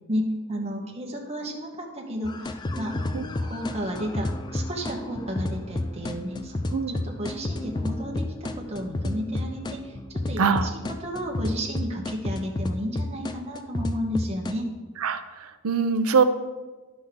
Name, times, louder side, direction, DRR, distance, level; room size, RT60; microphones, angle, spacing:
voice 1, 0.1-3.0 3.4-14.7, equal, 30° right, -1 dB, 1.1 m, -32 dB
sound 1, 2.2-14.5, left 2 dB, 20° left, 0.3 m, -31 dB
voice 2, 10.4-10.7 15.0-16.2, right 5 dB, 85° right, 10 dB, 0.6 m, -23 dB
11.0 x 6.2 x 3.6 m, 1.3 s
head